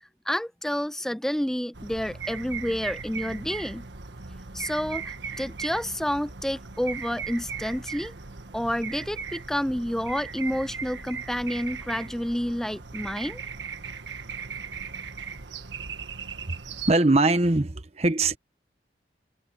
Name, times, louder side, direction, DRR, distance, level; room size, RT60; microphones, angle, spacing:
voice 1, 0.3-3.9 4.5-8.1 8.5-13.4, equal, 5° left, 0.3 m, -29 dB
sound 1, 1.7-17.0, right 5 dB, 85° right, 1.6 m, -38 dB
voice 2, 16.9-18.4, right 2 dB, 35° right, 1.0 m, -21 dB
head